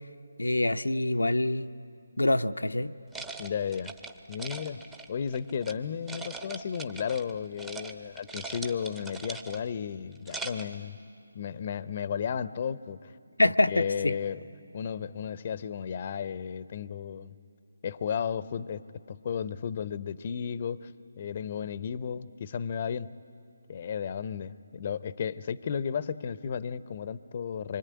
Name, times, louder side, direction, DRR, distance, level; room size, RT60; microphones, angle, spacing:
voice 1, 0.4-1.7 2.2-2.9 13.4-14.2, left 2 dB, 90° left, 9 dB, 0.7 m, -25 dB
sound 1, 3.1-5.7 6.1-7.3 7.6-7.9 8.2-9.7 10.1-10.8, right 3 dB, 10° right, 0.8 m, -41 dB
voice 2, 3.4-3.9 4.3-4.8 5.1-11.0 11.3-13.1 13.4-14.4 14.7-17.3 17.8-20.9 21.2-23.1 23.7-27.8, left 7 dB, 35° left, 17 dB, 0.7 m, -34 dB
25.5 x 24.5 x 9.6 m, 2.4 s
figure-of-eight pair, 155°, 0 cm